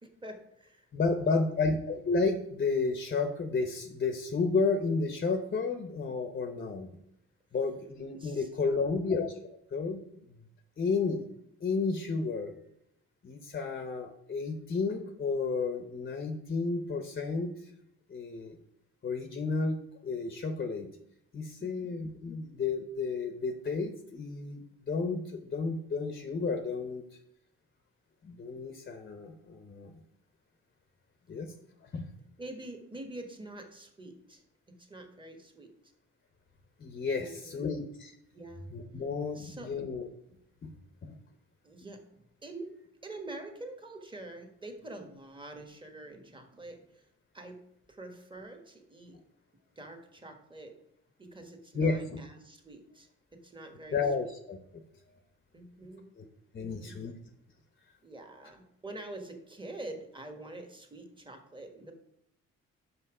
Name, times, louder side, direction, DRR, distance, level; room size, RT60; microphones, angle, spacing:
voice 1, 0.0-1.7 8.2-9.1 21.6-21.9 32.4-34.4 34.7-35.7 37.2-37.7 38.3-38.7 39.3-39.7 41.6-42.7 43.0-47.1 47.3-47.6 47.9-49.2 49.8-50.7 51.2-53.1 53.4-54.3 55.5-56.1 56.6-57.0 58.0-61.9, right 2 dB, 15° right, 4 dB, 1.2 m, -46 dB
voice 2, 0.9-6.9 7.5-9.3 9.7-10.0 10.8-11.3 11.6-12.5 13.2-17.7 18.1-18.6 19.0-20.9 21.3-27.0 28.2-29.9 31.3-31.5 31.8-32.1 36.8-38.1 38.7-40.1 40.6-40.7 41.0-41.2 51.7-52.2 53.9-54.6 56.2-56.3 56.5-57.1, left 4 dB, 30° left, 6 dB, 0.7 m, -32 dB
5.7 x 5.6 x 4.8 m, 0.75 s
cardioid pair, 90°, 30 cm